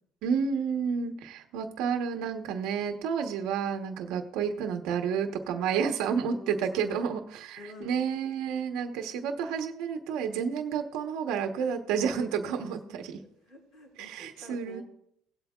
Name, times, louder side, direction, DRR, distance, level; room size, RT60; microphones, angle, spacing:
voice 1, 0.2-13.2 14.0-14.8, right 7 dB, 80° right, 5 dB, 1.1 m, -30 dB
voice 2, 6.3-7.0 7.5-8.1 12.8-14.8, left 2 dB, 65° left, -2 dB, 4.7 m, -48 dB
18.5 x 8.1 x 2.4 m, 0.69 s
cardioid pair, 125°, 0 cm